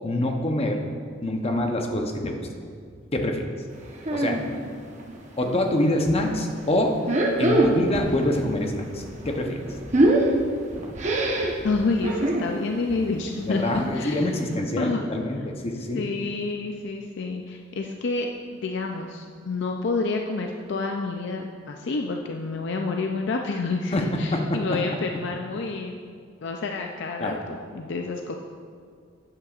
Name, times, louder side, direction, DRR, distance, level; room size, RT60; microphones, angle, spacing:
voice 1, 0.0-0.8 1.2-2.4 3.1-3.5 4.1-4.5 5.4-7.0 7.4-9.6 13.5-16.0 23.9-24.0 24.3-24.8 27.2-27.4, left 1 dB, 30° left, 3 dB, 0.8 m, -25 dB
sound 1, 4.0-4.5 4.8-5.6 6.0-6.2 6.9-8.1 8.4-12.5 12.9-13.1 13.4-13.5 13.7-13.8 14.3-14.4, right 2 dB, 35° right, 1.0 m, -23 dB
voice 2, 11.6-14.3 14.8-15.0 15.7-26.0 26.4-28.4, left 3 dB, 60° left, 3 dB, 0.5 m, -29 dB
11.5 x 8.7 x 2.4 m, 2.1 s
head